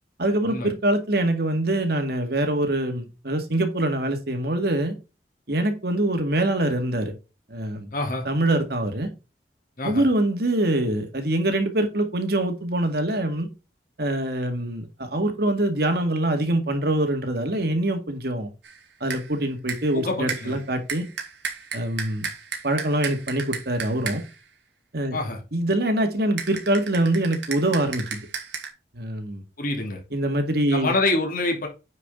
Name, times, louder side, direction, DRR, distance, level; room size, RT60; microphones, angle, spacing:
voice 1, 0.2-4.9 5.5-7.1 7.5-7.9 8.3-9.1 9.8-13.5 14.0-18.5 19.0-21.1 21.7-22.3 22.6-24.2 24.9-25.2 25.5-28.2 28.9-29.4 30.1-30.9, right 1 dB, 60° right, 2.0 m, -24 dB
voice 2, 7.9-8.2 9.8-10.0 19.9-20.6 25.1-25.4 29.6-30.0 30.7-31.7, left 2 dB, 50° left, 2.8 m, -26 dB
sound 1, 18.6-18.8 19.1-19.3 19.7-20.0 20.3-24.4 26.4-28.7, right 6 dB, 90° right, 2.4 m, -34 dB
9.5 x 5.0 x 3.7 m
head